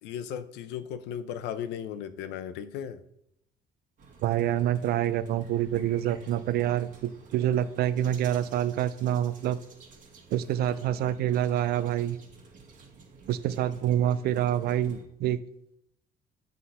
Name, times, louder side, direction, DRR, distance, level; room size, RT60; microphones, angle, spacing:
voice 1, 0.0-3.0, left 9 dB, 90° left, 0.6 m, -36 dB
sound 1, 4.0-15.0, right 4 dB, 50° right, 1.9 m, -53 dB
voice 2, 4.2-9.6 10.3-12.2 13.3-15.4, right 11 dB, 65° right, 0.5 m, -27 dB
7.8 x 3.8 x 5.6 m
cardioid pair, 110°, 17 cm